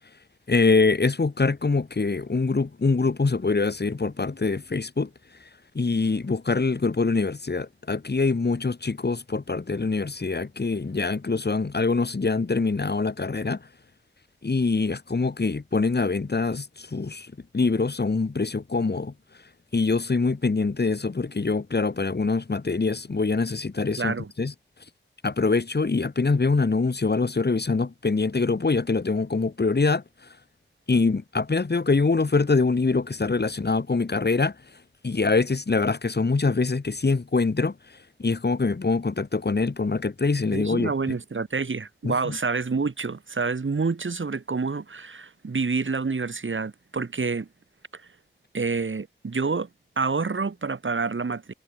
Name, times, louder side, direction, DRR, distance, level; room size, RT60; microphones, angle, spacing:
voice 1, 0.5-5.1 5.7-13.7 14.4-19.1 19.7-24.5 25.2-30.0 30.9-34.5 35.0-37.7 38.2-40.9 42.0-42.4, left 3 dB, 55° left, 3.2 m, -24 dB
voice 2, 24.0-24.3 40.5-47.5 47.9-48.0 48.5-49.7 50.0-51.5, right 4 dB, 75° right, 6.6 m, -28 dB
wide cardioid pair, 75°, 20 cm